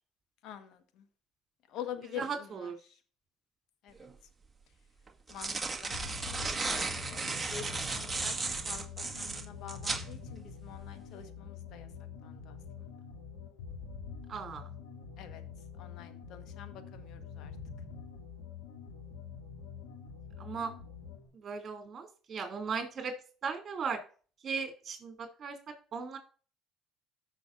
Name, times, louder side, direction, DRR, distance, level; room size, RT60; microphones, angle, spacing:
voice 1, 0.4-1.0 1.7-2.3 3.8-3.9 5.3-5.9 6.3-8.3 8.6-8.8 9.1-11.9 12.2-12.6 15.2-15.4 15.8-17.5, left 9 dB, 70° left, 9 dB, 1.4 m, -46 dB
voice 2, 2.1-2.8 14.3-14.7 20.4-20.7 21.3-23.1 23.4-24.0 24.4-26.2, right 5 dB, 40° right, 4 dB, 2.7 m, -37 dB
sound 1, 4.0-4.1 5.1-10.1, right 3 dB, 20° right, 1.7 m, -35 dB
sound 2, 5.9-21.3, left 6 dB, 90° left, 2.7 m, -46 dB
14.5 x 5.9 x 2.6 m, 0.38 s
supercardioid pair, 75°, 0 cm